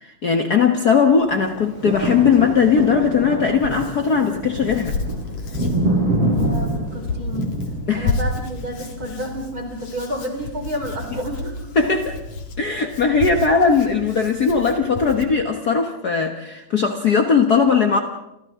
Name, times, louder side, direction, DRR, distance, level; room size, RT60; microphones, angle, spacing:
voice 1, 0.0-5.0 7.9-8.1 11.7-12.2 12.6-18.0, left 5 dB, 75° left, 4 dB, 0.8 m, -18 dB
Hands, 1.2-15.2, left 3 dB, 55° left, 3.3 m, -31 dB
sound 1, 1.4-9.7 10.2-10.3, right 1 dB, 45° right, 8.6 m, -26 dB
voice 2, 6.2-7.6 7.9-11.6, equal, 25° right, 2 dB, 4.6 m, -30 dB
30.0 x 27.5 x 3.7 m, 0.88 s
omnidirectional pair, 3.8 m